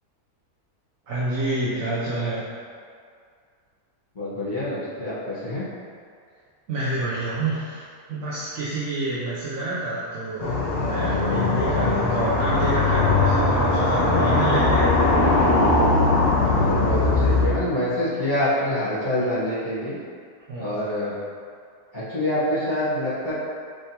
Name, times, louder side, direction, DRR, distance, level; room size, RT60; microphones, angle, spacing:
voice 1, 1.1-2.4 6.7-7.8 8.1-14.9 16.4-16.7 20.5-20.7, right 2 dB, 65° right, -8 dB, 1.1 m, -28 dB
voice 2, 4.1-5.6 16.6-20.0 20.6-21.1 21.9-23.3, left 1 dB, 30° left, -12 dB, 1.5 m, -26 dB
sound 1, 10.4-17.5, left 3 dB, 60° left, 1.0 m, -20 dB
4.8 x 3.3 x 2.8 m, 2.2 s
omnidirectional pair, 1.6 m